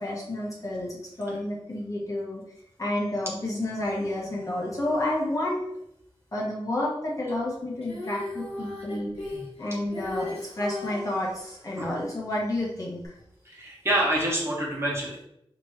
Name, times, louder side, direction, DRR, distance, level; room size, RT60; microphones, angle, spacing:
voice 1, 0.0-2.4 2.8-5.6 6.3-9.1 9.6-13.1, left 1 dB, 35° left, -5 dB, 1.3 m, -30 dB
Female singing, 7.8-11.1 13.0-13.1, left 2 dB, 85° left, 1.2 m, -36 dB
voice 2, 13.4-15.2, right 1 dB, 25° right, -4 dB, 1.4 m, -27 dB
5.1 x 3.0 x 3.2 m, 0.78 s
wide cardioid pair, 90°, 10 cm